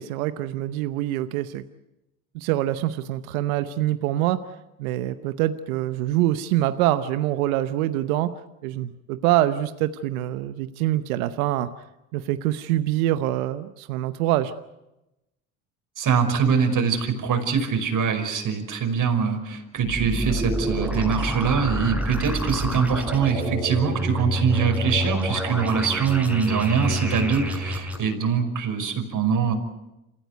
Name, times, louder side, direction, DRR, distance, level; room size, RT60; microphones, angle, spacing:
voice 1, 0.0-1.6 2.3-4.4 4.8-8.3 8.6-11.7 12.1-14.5, right 14 dB, 85° right, 11 dB, 1.0 m, -25 dB
voice 2, 16.0-29.5, right 6 dB, 50° right, 6 dB, 5.4 m, -23 dB
sound 1, 19.8-28.0, equal, 5° right, 6.9 m, -28 dB
28.0 x 15.5 x 9.4 m, 0.93 s
supercardioid pair, 75°, 41 cm